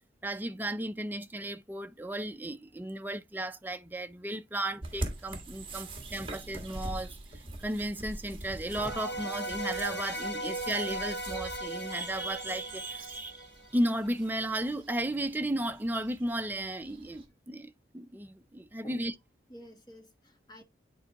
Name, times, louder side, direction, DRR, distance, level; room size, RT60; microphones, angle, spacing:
voice 1, 0.2-13.5 13.7-19.1, right 1 dB, 10° right, 0.4 m, -34 dB
sound 1, 4.8-17.3, right 2 dB, 30° right, 1.5 m, -44 dB
sound 2, 8.7-13.9, right 1 dB, 65° left, 1.2 m, -37 dB
voice 2, 19.5-20.6, equal, 20° left, 1.2 m, -49 dB
10.0 x 4.5 x 2.9 m
head